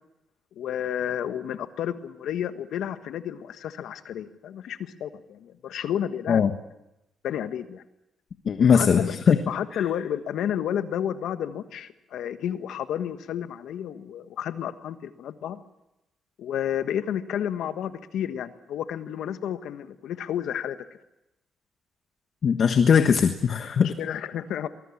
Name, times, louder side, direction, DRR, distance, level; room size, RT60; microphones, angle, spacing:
voice 1, 0.6-6.4 7.2-7.8 8.7-9.1 9.5-15.6 16.4-20.8 23.8-24.7, left 10 dB, 80° left, 10 dB, 1.4 m, -31 dB
voice 2, 8.4-9.4 22.4-23.9, left 7 dB, 60° left, 7 dB, 1.4 m, -20 dB
23.5 x 21.0 x 7.3 m, 0.92 s
cardioid pair, 75°, 0 cm